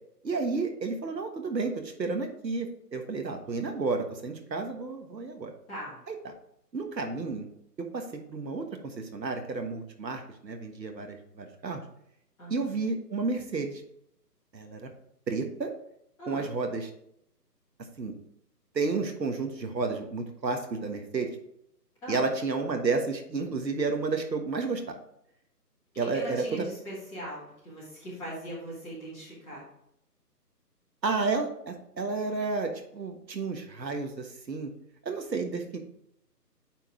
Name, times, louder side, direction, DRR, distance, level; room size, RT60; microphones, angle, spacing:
voice 1, 0.2-5.5 6.1-6.2 6.7-7.5 7.8-11.8 12.5-13.8 14.5-14.9 15.3-15.7 16.3-16.9 18.0-18.1 18.7-21.3 22.1-25.0 26.0-26.6 31.0-34.7 35.0-35.8, right 4 dB, 85° right, 4 dB, 1.4 m, -31 dB
voice 2, 5.7-6.0 12.4-12.7 16.2-16.5 22.0-22.2 25.9-29.7, equal, 5° left, -11 dB, 1.4 m, -40 dB
9.1 x 3.8 x 3.6 m, 0.76 s
figure-of-eight pair, 160°, 49 cm